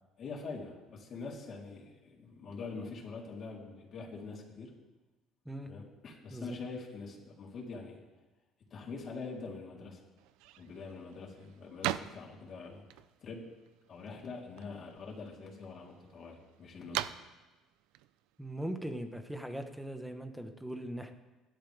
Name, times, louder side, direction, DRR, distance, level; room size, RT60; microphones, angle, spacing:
voice 1, 0.2-4.7 5.6-8.0 8.7-10.0 10.6-12.8 13.2-13.5 13.9-17.1, left 4 dB, 40° left, -3 dB, 3.9 m, -44 dB
sound 1, 10.2-19.3, right 13 dB, 90° right, 0.6 m, -44 dB
voice 2, 18.4-21.1, right 1 dB, 5° right, 5 dB, 1.4 m, -40 dB
29.0 x 12.0 x 3.6 m, 1.1 s
cardioid pair, 150°, 0 cm